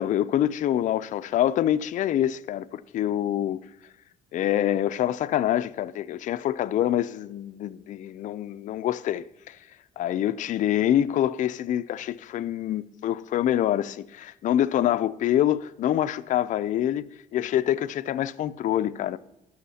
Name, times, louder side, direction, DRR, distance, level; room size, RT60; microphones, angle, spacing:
voice 1, 0.0-3.6 4.3-9.6 10.0-17.0 17.3-19.2, left 11 dB, 50° left, 0.4 m, -26 dB
16.5 x 6.4 x 2.8 m
cardioid pair, 110°, 17 cm